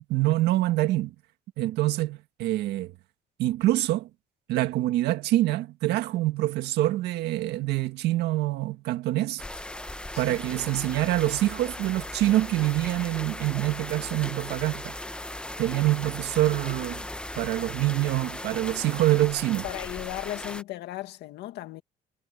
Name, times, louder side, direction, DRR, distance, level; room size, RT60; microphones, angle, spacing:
voice 1, 0.1-1.1 1.6-2.9 3.4-4.1 4.5-9.4 10.2-14.9 15.6-17.0 17.4-19.6, right 16 dB, 85° right, 1.8 m, -25 dB
sound 1, 9.4-20.6, left 1 dB, 5° left, 1.0 m, -38 dB
voice 2, 10.1-10.4 19.6-21.8, left 16 dB, 80° left, 2.1 m, -36 dB
cardioid pair, 110°, 17 cm